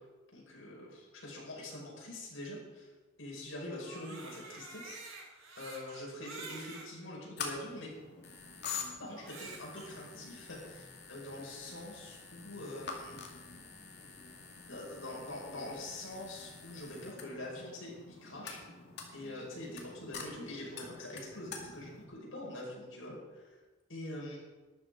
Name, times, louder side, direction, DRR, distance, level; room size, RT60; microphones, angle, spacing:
voice 1, 0.3-2.9 3.2-5.1 5.6-7.9 9.0-13.2 14.7-18.6 19.1-23.6 23.9-24.4, left 1 dB, 75° left, -3 dB, 5.3 m, -44 dB
Crying sobbing, 3.8-6.9 7.6-7.7 9.1-9.9, right 3 dB, 85° right, 2.8 m, -48 dB
sound 1, 7.4-22.1, left 5 dB, 55° left, 2.2 m, -47 dB
13.0 x 10.5 x 5.1 m, 1.2 s
head